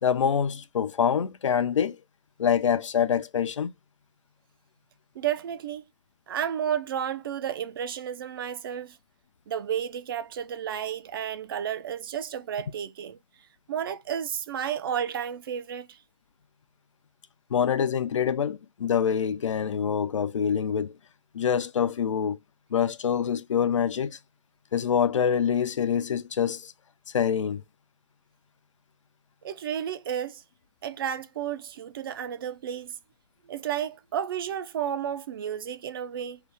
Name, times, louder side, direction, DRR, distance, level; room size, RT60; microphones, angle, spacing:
voice 1, 0.0-2.0 2.4-3.7 17.5-21.0 21.3-22.4 22.7-24.2 24.7-26.7 27.1-27.6, left 8 dB, 90° left, 0.4 m, -25 dB
voice 2, 5.1-5.8 6.3-9.0 9.5-13.2 13.7-16.0 29.4-30.4 30.8-33.0 33.4-36.4, right 9 dB, 50° right, 0.4 m, -32 dB
2.8 x 2.1 x 3.3 m
hypercardioid pair, 150°, 15 cm